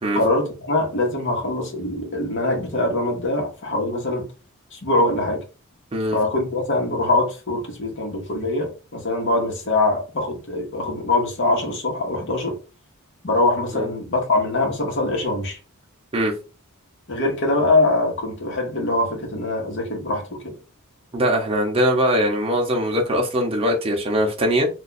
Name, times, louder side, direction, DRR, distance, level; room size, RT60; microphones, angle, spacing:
voice 1, 0.1-4.3 4.7-5.4 6.1-12.6 13.2-15.6 17.1-20.5, left 2 dB, 55° left, 1.1 m, -23 dB
voice 2, 21.1-24.7, equal, 25° right, 0.7 m, -21 dB
2.5 x 2.3 x 4.0 m
head